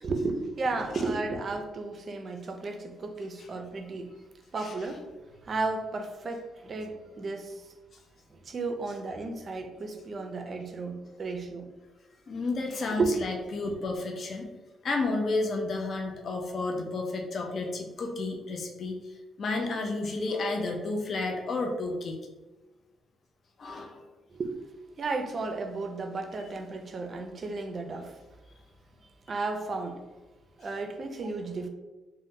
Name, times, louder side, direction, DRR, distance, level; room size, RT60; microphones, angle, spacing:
voice 1, 0.0-4.1 4.5-5.1 5.4-7.7 8.3-11.7 13.0-13.2 13.6-13.7 24.3-24.5 25.0-28.2 29.3-30.0 30.6-31.7, right 3 dB, 45° right, 0.4 m, -33 dB
voice 2, 12.3-14.5 14.8-22.2 23.6-24.0, left 3 dB, 50° left, 0.4 m, -31 dB
2.6 x 2.1 x 3.5 m
cardioid pair, 90°, 0 cm